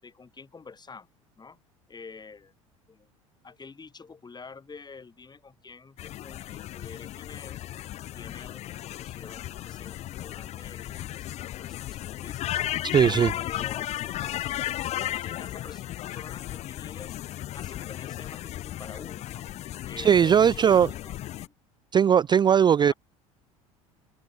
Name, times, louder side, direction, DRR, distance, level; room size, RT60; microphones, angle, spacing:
voice 1, 0.0-1.1 1.4-1.6 1.9-2.5 2.9-3.1 3.4-7.6 8.1-8.7 9.0-12.6 13.0-14.6 15.1-15.8 16.1-17.1 17.5-19.4 19.9-21.5 22.8-22.9, left 4 dB, 25° left, 7.1 m, -47 dB
sound 1, 6.0-21.5, left 13 dB, 40° left, 0.4 m, -35 dB
voice 2, 12.9-13.3 20.0-20.9 21.9-22.9, right 8 dB, 25° right, 0.4 m, -19 dB
hypercardioid pair, 70°, 18 cm